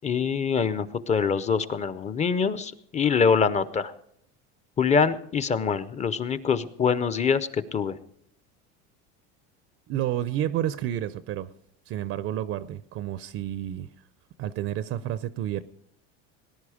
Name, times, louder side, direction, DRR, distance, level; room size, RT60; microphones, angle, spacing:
voice 1, 0.0-3.9 4.8-7.9, left 6 dB, 20° left, 14 dB, 0.6 m, -24 dB
voice 2, 9.9-11.5 11.9-13.9 14.4-15.6, right 12 dB, 45° right, 15 dB, 0.5 m, -30 dB
19.0 x 10.5 x 5.0 m, 0.71 s
supercardioid pair, 130°, 33 cm